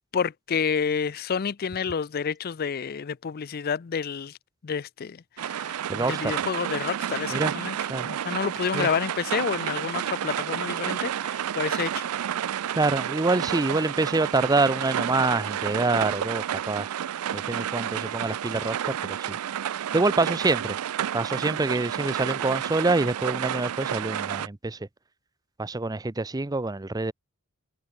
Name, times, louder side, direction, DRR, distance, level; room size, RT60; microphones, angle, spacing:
voice 1, 0.1-4.4 4.6-7.8 8.0-12.1, left 6 dB, 45° left, 0.4 m, -29 dB
sound 1, 5.4-24.5, right 10 dB, 75° right, 0.4 m, -30 dB
voice 2, 5.9-6.3 7.3-7.5 7.9-8.1 8.7-8.9 11.7-11.8 12.8-16.9 17.3-18.9 19.3-19.4 19.9-20.8 21.1-24.8 25.6-27.1, right 2 dB, 15° right, 0.6 m, -26 dB
head